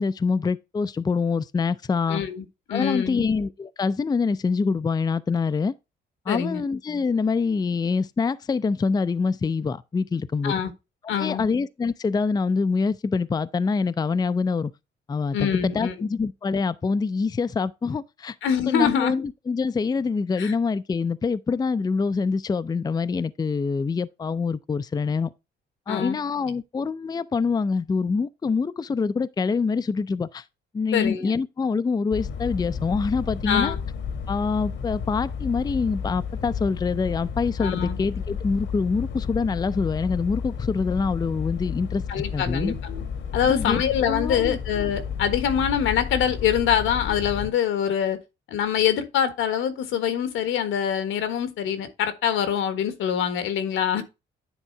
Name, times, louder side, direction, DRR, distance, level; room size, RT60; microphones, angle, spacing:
voice 1, 0.0-2.2 2.7-5.7 6.3-10.5 11.0-14.7 15.1-18.4 18.7-25.3 25.9-30.4 30.7-33.8 34.3-42.7 43.5-43.8 44.1-44.6, left 4 dB, 20° left, 0.4 m, -25 dB
voice 2, 2.1-3.3 6.3-6.6 10.4-10.7 11.1-11.5 15.3-15.9 18.4-19.1 20.4-20.5 25.9-26.2 30.9-31.3 33.5-33.8 37.6-38.0 42.1-43.0 43.3-48.2 48.5-54.0, left 8 dB, 85° left, 1.5 m, -24 dB
sound 1, 32.1-47.5, left 6 dB, 70° left, 1.3 m, -32 dB
10.0 x 3.7 x 4.4 m
cardioid pair, 90°, 20 cm